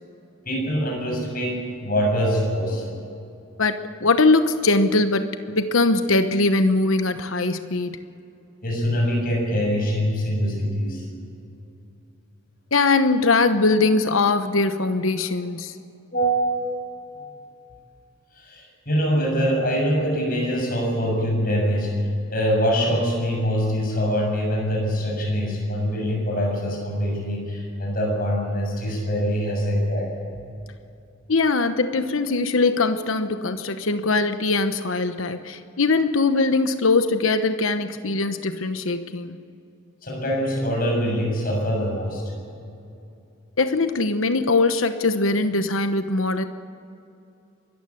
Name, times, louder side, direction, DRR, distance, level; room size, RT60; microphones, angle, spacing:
voice 1, 0.5-2.9 8.6-11.0 16.1-16.9 18.4-30.1 40.0-42.2, equal, 45° left, 0 dB, 7.1 m, -24 dB
voice 2, 3.6-8.0 12.7-15.7 31.3-39.4 43.6-46.4, left 3 dB, 80° left, 9 dB, 1.1 m, -21 dB
24.0 x 14.5 x 8.6 m, 2.7 s
head